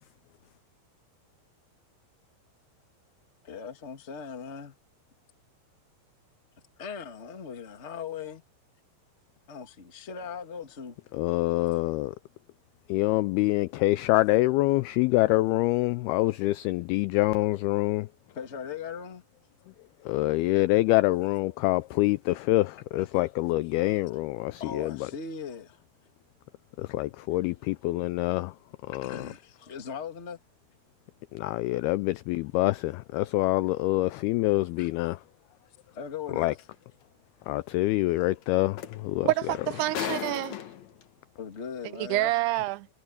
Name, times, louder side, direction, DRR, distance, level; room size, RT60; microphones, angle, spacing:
voice 1, 3.4-4.7 6.8-8.4 9.5-11.0 18.3-19.2 23.0-23.1 24.6-25.8 27.8-27.9 28.9-30.4 34.8-35.2 35.9-36.5 41.4-42.3, left 6 dB, 35° left, 1.0 m, -39 dB
voice 2, 11.1-12.2 12.9-18.1 20.1-25.1 26.8-28.5 28.9-29.2 31.3-35.2 36.4-36.5 37.5-39.3, left 19 dB, 85° left, 2.2 m, -26 dB
sound 1, 36.6-36.7 38.4-38.5 38.8-41.0 41.9-42.0, left 9 dB, 65° left, 1.8 m, -36 dB
voice 3, 39.2-40.6 42.0-42.9, right 18 dB, 80° right, 2.4 m, -27 dB
omnidirectional pair, 4.9 m